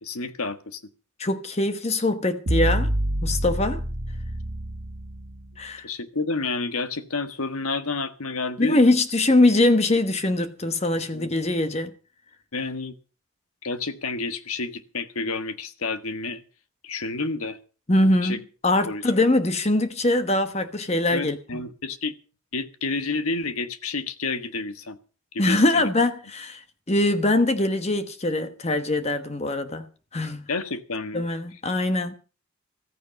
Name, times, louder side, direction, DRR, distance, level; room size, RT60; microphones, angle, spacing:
voice 1, 0.0-0.8 5.8-8.8 11.1-11.3 12.5-12.9 13.6-16.4 16.8-17.6 18.2-18.4 18.8-19.0 21.1-22.2 22.5-25.0 25.3-25.9 30.5-31.2, left 3 dB, 90° left, 1.5 m, -30 dB
voice 2, 1.2-2.9 3.2-3.8 5.6-5.9 8.6-11.9 17.9-21.4 25.4-29.9 30.1-30.4 31.1-32.1, left 2 dB, 30° left, 1.1 m, -22 dB
sound 1, 2.5-5.5, right 1 dB, 70° right, 1.6 m, -27 dB
15.0 x 14.5 x 5.3 m
head